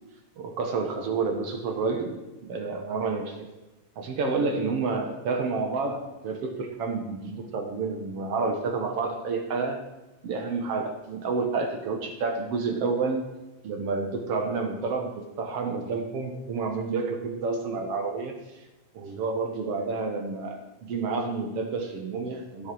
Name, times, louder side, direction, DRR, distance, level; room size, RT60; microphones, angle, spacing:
voice 1, 0.4-2.2 2.5-3.4 4.0-9.8 10.2-13.2 13.6-18.3 18.9-22.7, right 4 dB, 60° right, 4 dB, 1.9 m, -29 dB
16.0 x 6.5 x 4.6 m, 1.1 s
omnidirectional pair, 3.4 m